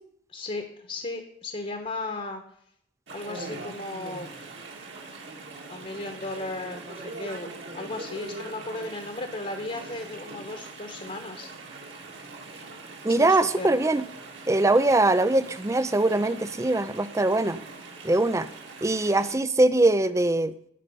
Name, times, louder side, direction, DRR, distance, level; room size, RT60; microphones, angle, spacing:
voice 1, 0.3-2.4 3.1-4.5 5.7-11.5 13.1-13.7, left 2 dB, 35° left, 4 dB, 1.2 m, -36 dB
Chatter / Stream, 3.1-19.3, right 3 dB, 65° right, 2.4 m, -42 dB
voice 2, 13.0-14.1 14.5-17.6 18.0-18.5 18.8-20.5, right 2 dB, 15° right, 14 dB, 0.5 m, -22 dB
14.5 x 5.5 x 5.5 m, 0.68 s
head